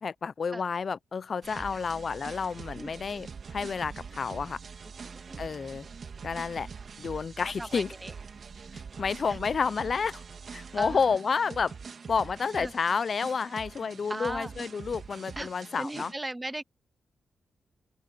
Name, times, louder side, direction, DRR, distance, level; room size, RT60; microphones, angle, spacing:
voice 1, 0.0-4.6 5.4-5.9 6.2-6.7 7.0-7.9 8.7-10.2 10.5-11.7 12.1-16.1, left 5 dB, 55° left, 0.6 m, -30 dB
sound 1, 1.4-16.1, right 5 dB, 60° right, 3.4 m, -44 dB
voice 2, 1.5-1.8 2.8-2.9 5.0-5.4 7.6-8.1 9.3-9.4 10.8-11.0 12.6-12.7 14.1-14.5 15.4-15.5 15.8-16.6, right 1 dB, 15° right, 0.6 m, -37 dB
cardioid pair, 60°, 0 cm